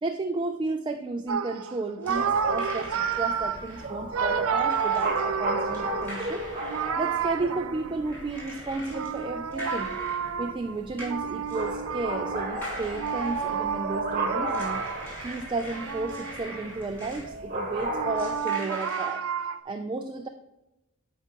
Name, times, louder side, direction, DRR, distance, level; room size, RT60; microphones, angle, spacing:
voice 1, 0.0-6.4 7.0-10.0 10.4-14.8 15.2-20.3, right 3 dB, 25° right, 6 dB, 0.3 m, -33 dB
sound 1, 1.3-8.3 8.9-15.2 15.7-16.8 17.2-19.6, right 7 dB, 80° right, 0.5 m, -31 dB
sound 2, 2.0-3.9 4.6-5.3 5.6-7.3 8.0-9.2 9.5-10.3 11.0-11.2 11.5-11.7 12.6-13.7 14.4-17.3 18.2-19.2, equal, 10° left, 2.7 m, -42 dB
sound 3, 2.1-18.4, right 2 dB, 40° right, 1.1 m, -35 dB
10.5 x 4.7 x 2.9 m, 0.96 s
head